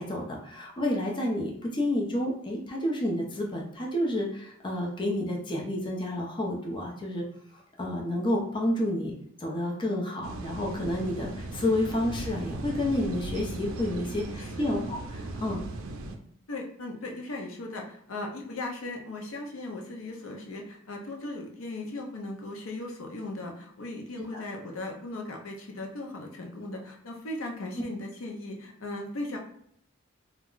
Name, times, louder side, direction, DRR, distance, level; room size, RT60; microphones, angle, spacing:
voice 1, 0.0-7.2 7.8-9.1 9.4-15.6 24.2-24.4, left 1 dB, 25° left, -2 dB, 0.5 m, -30 dB
sound 1, 10.2-16.2, right 2 dB, 75° right, 0.4 m, -38 dB
voice 2, 14.4-14.9 16.5-29.4, left 2 dB, 75° left, 1 dB, 0.6 m, -38 dB
2.3 x 2.0 x 3.7 m, 0.69 s
head